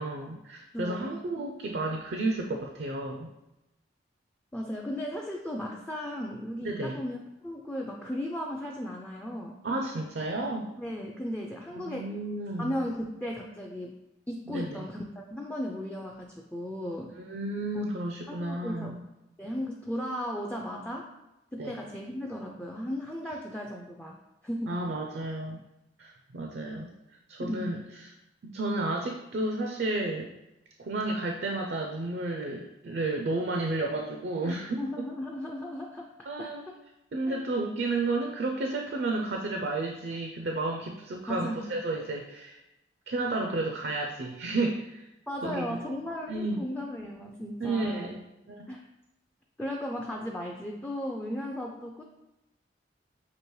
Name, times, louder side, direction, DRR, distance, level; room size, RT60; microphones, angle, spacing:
voice 1, 0.0-3.3 6.6-7.0 9.6-10.7 11.7-12.9 14.5-14.9 17.2-19.0 21.6-21.8 24.7-25.6 26.0-26.9 27.3-27.8 28.4-30.3 30.8-34.8 36.3-36.7 37.1-42.6 43.1-45.1 45.4-45.8 46.3-46.6 47.6-48.7, right 2 dB, 60° right, 2 dB, 0.4 m, -32 dB
voice 2, 0.7-1.2 4.5-7.2 7.4-9.6 10.8-12.1 12.6-13.9 14.3-15.0 15.3-17.1 17.7-17.8 18.3-18.9 19.4-21.1 21.5-24.2 24.4-24.8 27.4-27.8 34.4-36.1 36.4-36.7 37.3-37.5 41.3-41.7 45.3-48.1 48.7-48.8 49.6-52.0, equal, 5° left, -1 dB, 0.3 m, -36 dB
6.0 x 2.8 x 3.1 m, 0.93 s
head